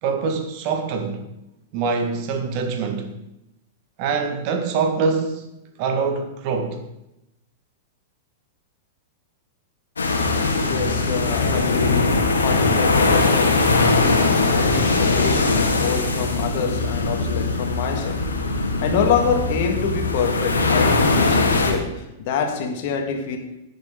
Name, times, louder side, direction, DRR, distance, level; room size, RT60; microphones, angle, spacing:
voice 1, 0.0-1.2 1.7-3.1 4.0-5.5 5.8-6.8, right 5 dB, 45° right, 1.7 m, -24 dB
sound 1, 10.0-21.7, left 3 dB, 80° left, 2.0 m, -20 dB
voice 2, 10.7-14.0 14.3-23.4, left 6 dB, 55° left, 1.8 m, -26 dB
17.0 x 6.6 x 3.8 m
figure-of-eight pair, 100°, 0 cm